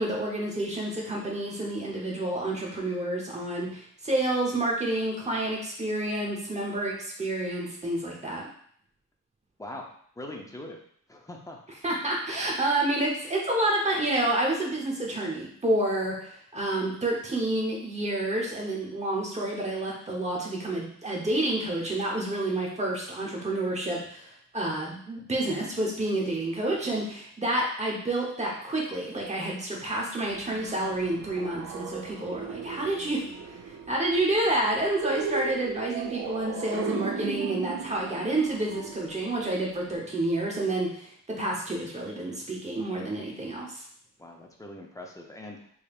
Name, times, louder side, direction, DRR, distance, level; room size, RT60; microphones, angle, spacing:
voice 1, 0.0-8.5 11.8-43.8, right 1 dB, 20° right, -2 dB, 0.9 m, -29 dB
voice 2, 10.2-10.8 11.1-11.6 44.2-45.6, left 1 dB, 10° left, 0 dB, 0.5 m, -41 dB
sound 1, 30.2-40.0, right 6 dB, 45° right, 0.4 m, -37 dB
3.5 x 3.2 x 2.4 m, 0.62 s
wide cardioid pair, 115°, 33 cm